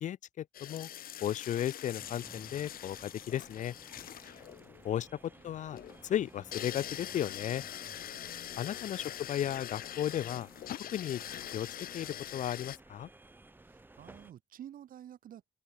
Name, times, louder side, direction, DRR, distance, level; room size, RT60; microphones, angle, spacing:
voice 1, 0.0-0.9 1.2-3.7 4.8-5.1 5.4-7.6 8.6-10.5 10.9-11.2 11.5-11.7 11.9-13.1, left 11 dB, 60° left, 0.5 m, -35 dB
sound 1, 0.5-12.8, left 11 dB, 85° left, 1.7 m, -44 dB
sound 2, 2.0-14.3, right 2 dB, 15° right, 5.3 m, -56 dB
voice 2, 4.2-4.6 7.8-8.5 13.6-15.5, right 10 dB, 75° right, 2.7 m, -52 dB
open air
wide cardioid pair, 150°, 15 cm